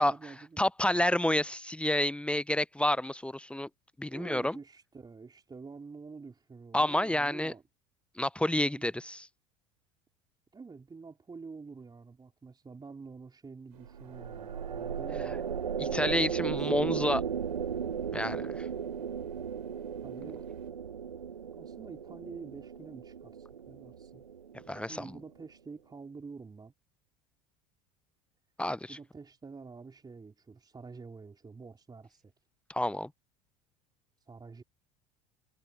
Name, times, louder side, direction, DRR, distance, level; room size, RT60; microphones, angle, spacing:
voice 1, 0.0-0.6 4.1-7.6 8.7-8.9 10.5-15.5 15.8-16.9 20.0-20.4 21.5-24.2 24.8-26.7 28.9-32.3 34.3-34.6, right 4 dB, 20° right, 3.9 m, -48 dB
voice 2, 0.6-3.7 4.0-4.6 6.7-7.5 8.2-9.3 15.8-17.2 18.1-18.7 24.7-25.2 28.6-29.0 32.7-33.1, left 1 dB, 5° left, 0.6 m, -29 dB
sound 1, 13.7-20.7, right 17 dB, 70° right, 5.9 m, -67 dB
sound 2, 13.8-25.2, right 7 dB, 90° right, 0.6 m, -36 dB
figure-of-eight pair, 70°, 21 cm